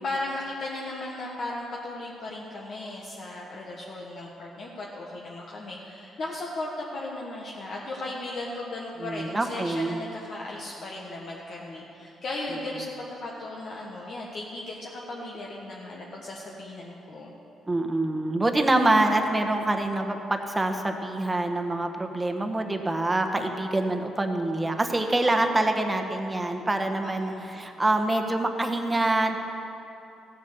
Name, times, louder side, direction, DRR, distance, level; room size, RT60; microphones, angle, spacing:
voice 1, 0.0-17.3 23.4-23.5 27.0-27.6, left 2 dB, 55° left, -3 dB, 1.4 m, -36 dB
voice 2, 9.0-10.0 17.7-29.4, right 2 dB, 15° right, 5 dB, 1.2 m, -25 dB
15.5 x 7.6 x 6.8 m, 2.9 s
cardioid pair, 90°, 0 cm